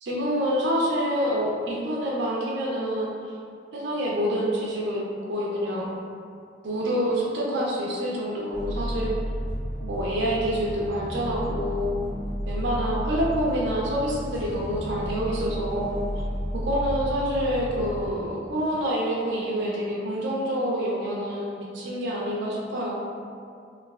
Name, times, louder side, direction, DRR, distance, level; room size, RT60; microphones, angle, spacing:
voice 1, 0.0-3.3 3.7-5.9 6.6-9.1 9.8-12.0 12.5-16.0 16.5-23.0, equal, 75° right, -5 dB, 0.4 m, -27 dB
sound 1, 8.5-18.1, equal, 80° left, 1.2 m, -32 dB
3.1 x 2.4 x 2.3 m, 2.3 s
head